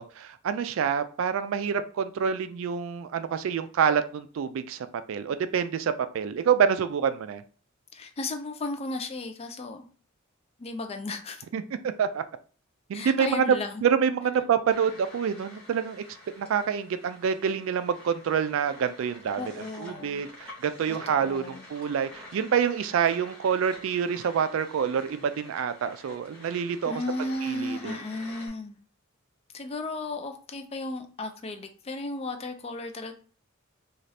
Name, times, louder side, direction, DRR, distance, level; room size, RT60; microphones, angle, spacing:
voice 1, 0.0-7.4 11.5-12.2 12.9-16.0 16.4-26.9 27.4-28.0, right 7 dB, 65° right, 0.3 m, -27 dB
voice 2, 7.9-9.9 10.6-11.4 12.9-13.8 19.4-20.3 20.9-21.7 26.8-28.8 29.5-33.1, left 2 dB, 30° left, 0.4 m, -35 dB
sound 1, 14.7-28.5, left 1 dB, 5° left, 0.9 m, -48 dB
2.7 x 2.4 x 3.2 m
head